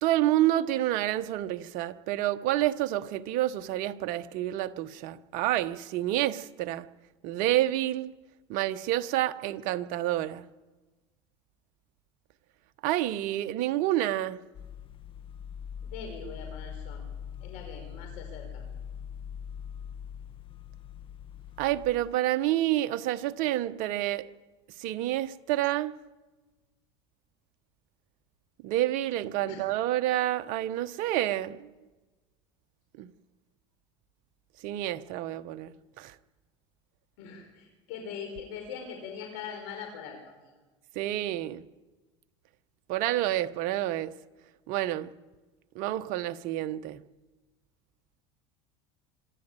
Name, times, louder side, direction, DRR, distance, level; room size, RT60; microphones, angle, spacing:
voice 1, 0.0-6.8 7.2-8.1 8.5-10.5 12.8-14.4 21.6-24.2 24.8-25.9 28.6-31.7 33.0-33.1 34.6-36.1 40.9-41.6 42.9-44.1 44.7-45.1 45.7-47.0, right 14 dB, 60° right, 1.1 m, -28 dB
sound 1, 14.5-21.9, left 8 dB, 35° left, 1.8 m, -42 dB
voice 2, 15.8-17.0 17.4-18.6 29.4-29.6 37.2-40.5, left 6 dB, 70° left, 5.0 m, -42 dB
25.5 x 12.0 x 9.1 m
supercardioid pair, 100°, 15 cm